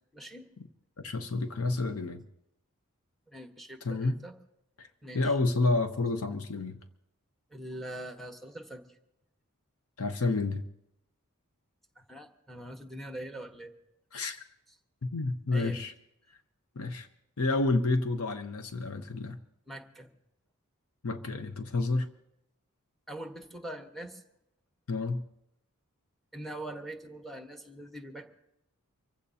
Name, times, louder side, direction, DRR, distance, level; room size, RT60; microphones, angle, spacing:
voice 1, 0.1-0.5 3.3-4.3 5.0-5.4 7.5-8.9 12.0-13.7 15.5-15.8 19.7-20.1 23.1-24.2 26.3-28.3, right 1 dB, ahead, 4 dB, 1.2 m, -43 dB
voice 2, 1.0-2.2 3.8-4.1 4.8-4.9 5.1-6.8 10.0-10.6 14.1-14.4 15.0-15.9 16.8-17.1 17.4-19.4 21.0-22.1 24.9-25.2, left 3 dB, 75° left, 8 dB, 0.8 m, -29 dB
25.0 x 15.0 x 2.8 m, 0.81 s
head